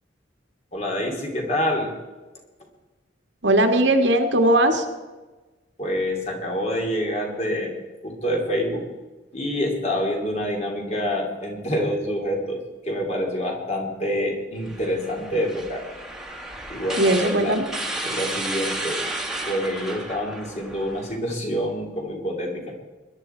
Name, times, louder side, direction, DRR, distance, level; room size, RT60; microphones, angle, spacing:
voice 1, 0.7-1.9 5.8-7.7 8.0-8.9 9.3-15.9 16.7-17.6 18.0-19.1 19.5-22.6, equal, 35° left, 1 dB, 2.9 m, -27 dB
voice 2, 3.4-4.8 17.0-17.6, right 1 dB, 75° right, 4 dB, 1.7 m, -19 dB
sound 1, 14.6-21.1, right 1 dB, 5° right, 1.7 m, -32 dB
20.5 x 11.0 x 4.5 m, 1.2 s
head